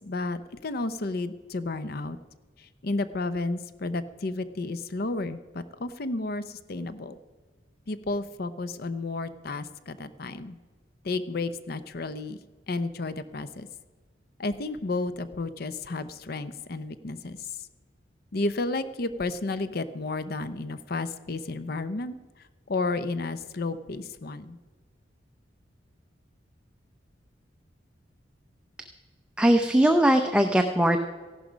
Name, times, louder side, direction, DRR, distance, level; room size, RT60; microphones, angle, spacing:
voice 1, 0.0-2.2 2.6-7.2 7.9-10.6 11.0-12.4 12.7-13.7 14.4-17.5 18.3-22.1 22.7-24.6, left 2 dB, 55° left, 13 dB, 0.7 m, -32 dB
voice 2, 29.4-31.0, right 1 dB, 5° right, 5 dB, 0.6 m, -20 dB
15.5 x 11.5 x 5.1 m, 1.4 s
head